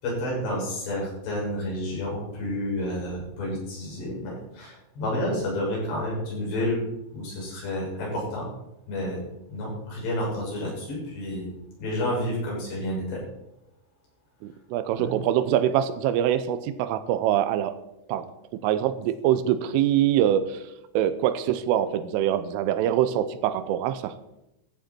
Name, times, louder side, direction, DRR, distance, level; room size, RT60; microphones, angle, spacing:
voice 1, 0.0-6.8 7.1-8.4 8.9-9.2 9.5-11.5 11.8-13.2 14.9-15.1, left 1 dB, 55° left, -4 dB, 8.3 m, -30 dB
voice 2, 14.4-17.7 18.1-18.3 18.6-20.6 20.9-24.1, right 11 dB, 85° right, 12 dB, 3.3 m, -24 dB
14.5 x 13.0 x 4.4 m, 0.85 s
omnidirectional pair, 5.8 m